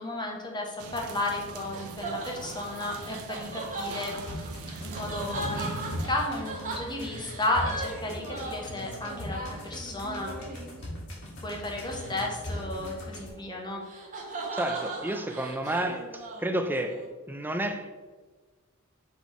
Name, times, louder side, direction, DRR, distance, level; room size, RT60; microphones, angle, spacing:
voice 1, 0.0-4.5 4.8-10.3 11.2-13.8, left 2 dB, 20° left, 0 dB, 1.1 m, -33 dB
sound 1, 0.8-6.1, right 3 dB, 80° right, 0.6 m, -41 dB
sound 2, 1.4-10.9 11.8-12.1 12.5-17.1, right 2 dB, 35° right, 1.1 m, -39 dB
sound 3, 4.2-13.3, left 1 dB, 65° left, 1.8 m, -40 dB
voice 2, 14.5-18.0, right 1 dB, 10° right, 7 dB, 0.4 m, -31 dB
5.4 x 4.0 x 4.7 m, 1.4 s
head